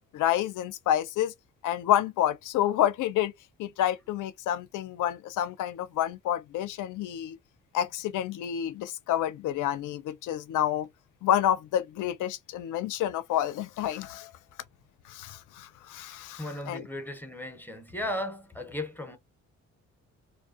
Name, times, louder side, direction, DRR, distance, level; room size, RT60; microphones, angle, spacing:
voice 1, 0.1-1.3 1.6-3.3 3.6-7.4 7.7-10.9 11.2-14.3 15.1-16.8, left 11 dB, 85° left, 0.5 m, -29 dB
voice 2, 16.1-19.2, left 1 dB, 5° left, 0.5 m, -36 dB
2.5 x 2.0 x 2.4 m
cardioid pair, 125°, 30 cm